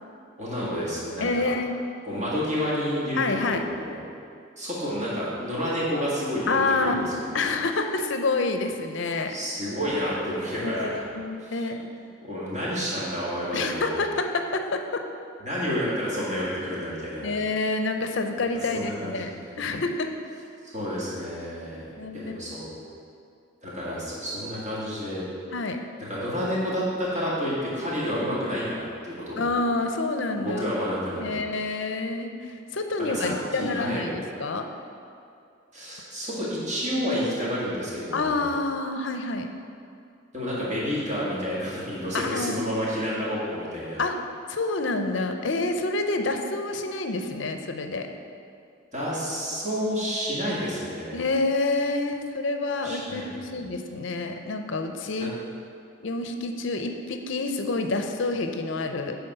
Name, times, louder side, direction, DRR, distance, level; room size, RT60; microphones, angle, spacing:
voice 1, 0.4-1.5 2.1-4.0 4.6-7.3 9.3-11.0 11.4-11.6 12.2-14.0 15.4-17.3 18.7-19.6 20.7-21.8 22.1-22.7 23.6-25.2 26.1-29.5 30.4-31.4 33.0-34.0 35.7-38.5 40.3-44.0 48.9-51.2 52.8-53.6 55.2-55.3, equal, 35° right, -7 dB, 2.0 m, -30 dB
voice 2, 1.2-1.9 3.2-3.6 6.5-7.1 7.3-9.3 10.6-11.8 13.5-15.0 17.2-20.1 22.0-22.5 25.5-25.8 28.1-28.2 29.4-30.6 31.2-34.6 38.1-39.5 42.1-42.6 44.0-44.2 44.5-48.1 51.1-55.3 56.0-59.2, left 3 dB, 65° left, 5 dB, 0.6 m, -28 dB
9.5 x 4.1 x 5.4 m, 2.4 s
head